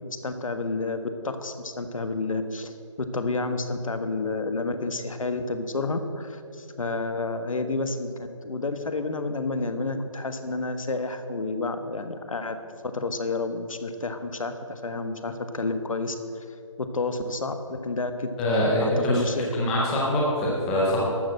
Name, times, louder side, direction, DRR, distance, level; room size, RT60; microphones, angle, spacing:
voice 1, 0.0-8.1 8.4-12.6 12.8-16.5 16.8-18.3 18.8-19.7, left 3 dB, 75° left, 8 dB, 1.2 m, -30 dB
voice 2, 18.4-19.2 19.6-21.0, left 1 dB, 5° left, -5 dB, 0.4 m, -23 dB
12.5 x 6.3 x 7.5 m, 2.5 s
figure-of-eight pair, 165°, 17 cm